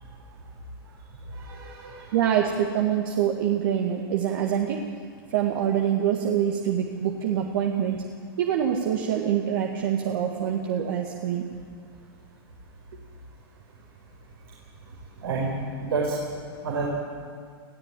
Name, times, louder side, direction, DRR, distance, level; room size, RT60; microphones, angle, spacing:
voice 1, 1.3-2.2 15.2-16.2 16.6-16.9, right 4 dB, 80° right, -2 dB, 4.5 m, -29 dB
voice 2, 2.1-4.8 5.3-8.1 8.4-11.5, right 9 dB, 60° right, 1 dB, 1.9 m, -25 dB
20.5 x 14.0 x 9.2 m, 2.1 s
hypercardioid pair, 125°, 13 cm